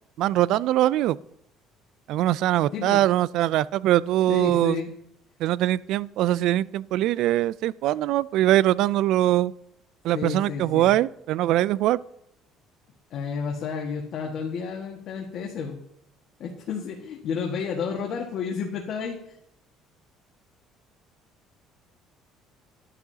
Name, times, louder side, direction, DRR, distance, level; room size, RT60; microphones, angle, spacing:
voice 1, 0.2-1.2 2.1-4.8 5.4-9.5 10.0-12.0, right 14 dB, 70° right, 20 dB, 0.3 m, -22 dB
voice 2, 4.3-4.9 10.1-10.9 13.1-15.8 16.4-19.4, left 6 dB, 60° left, 0 dB, 1.7 m, -31 dB
11.5 x 11.0 x 2.8 m, 0.78 s
cardioid pair, 100°, 0 cm